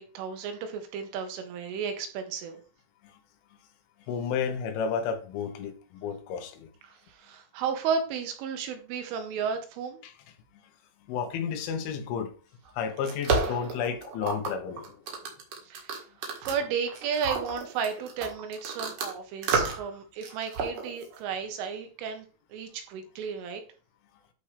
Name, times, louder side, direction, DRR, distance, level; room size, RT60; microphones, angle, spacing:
voice 1, 0.0-2.6 6.8-10.0 15.6-23.6, right 6 dB, 85° right, 3.8 m, -33 dB
voice 2, 4.1-6.7 10.0-10.1 11.1-12.3 12.8-15.0, left 6 dB, 80° left, 3.4 m, -32 dB
sound 1, 12.7-19.1 19.4-19.9 20.2-21.2, right 4 dB, 55° right, 2.6 m, -31 dB
11.5 x 4.7 x 3.3 m
omnidirectional pair, 5.6 m